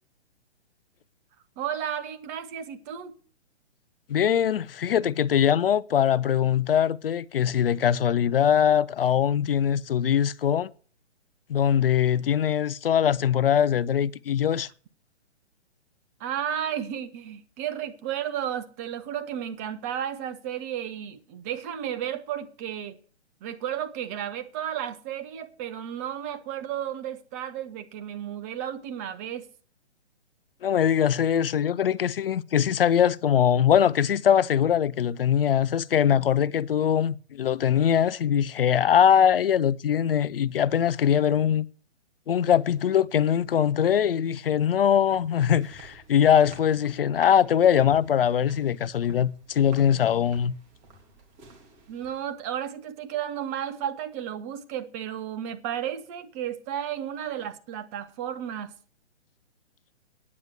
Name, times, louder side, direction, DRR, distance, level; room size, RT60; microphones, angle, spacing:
voice 1, 1.6-3.2 16.2-23.0 23.4-29.5 51.9-58.7, right 10 dB, 15° right, 0.5 m, -33 dB
voice 2, 4.1-10.7 11.5-14.7 30.6-41.7 42.3-50.5, left 9 dB, 55° left, 0.6 m, -22 dB
sound 1, 44.7-52.5, right 2 dB, 30° right, 3.1 m, -52 dB
9.7 x 8.7 x 8.0 m
figure-of-eight pair, 130°, 34 cm